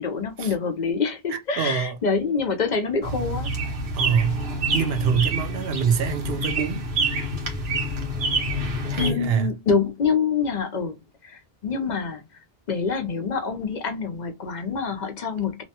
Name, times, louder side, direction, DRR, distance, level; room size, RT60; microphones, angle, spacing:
voice 1, 0.0-3.5 9.0-11.0 11.2-12.2 12.7-15.6, left 5 dB, 55° left, 0.6 m, -26 dB
voice 2, 1.3-2.0 3.9-4.4 4.7-6.9 8.9-9.5, right 6 dB, 75° right, 0.8 m, -25 dB
sound 1, 3.0-9.1, right 1 dB, 90° right, 1.2 m, -27 dB
2.8 x 2.2 x 2.7 m
omnidirectional pair, 1.0 m